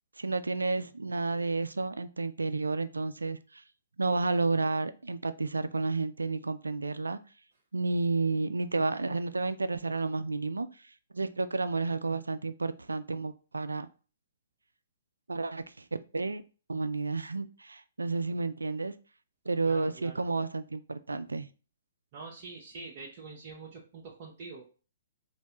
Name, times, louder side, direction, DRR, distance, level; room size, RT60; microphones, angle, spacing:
voice 1, 0.2-3.6 4.0-7.2 7.7-10.7 11.1-13.9 15.3-15.8 16.1-16.4 16.7-18.9 19.5-21.5, right 3 dB, 85° right, 12 dB, 0.3 m, -31 dB
voice 2, 19.6-20.3 22.1-24.7, right 4 dB, 45° right, -2 dB, 0.7 m, -45 dB
3.2 x 2.5 x 2.8 m, 0.36 s
figure-of-eight pair, 125°, 0 cm